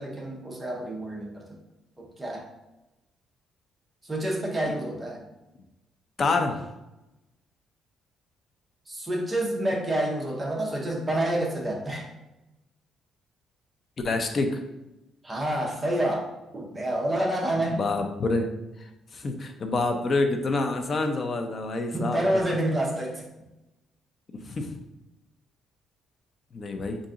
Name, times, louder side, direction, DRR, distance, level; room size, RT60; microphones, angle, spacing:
voice 1, 0.0-1.4 2.0-2.4 4.0-5.2 8.9-12.1 15.2-17.8 21.9-23.2, right 1 dB, 15° right, -1 dB, 0.7 m, -28 dB
voice 2, 6.2-6.7 14.0-14.6 17.7-18.5 19.1-22.3 24.3-24.7 26.5-27.0, left 3 dB, 35° left, 5 dB, 0.5 m, -27 dB
3.8 x 2.6 x 3.6 m, 0.96 s
cardioid pair, 140°, 0 cm